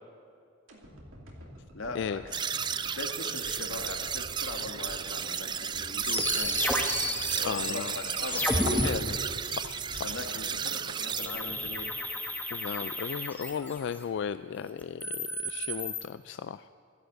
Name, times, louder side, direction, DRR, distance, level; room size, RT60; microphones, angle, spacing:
sound 1, 0.7-12.9 13.3-13.4, equal, 80° right, 2.6 m, -49 dB
voice 1, 1.7-2.2 2.9-6.8 7.4-9.3 10.0-11.9, left 2 dB, 90° left, 5 dB, 1.6 m, -40 dB
sound 2, 2.3-11.3, right 7 dB, 25° right, 0.4 m, -33 dB
sound 3, 6.0-8.9 11.2-14.0 14.8-16.0, left 1 dB, 10° left, 1.1 m, -32 dB
voice 2, 7.4-7.9 8.3-9.2 9.5-10.3 12.5-16.7, left 7 dB, 60° left, 12 dB, 0.3 m, -36 dB
13.5 x 11.0 x 8.0 m, 2.6 s
head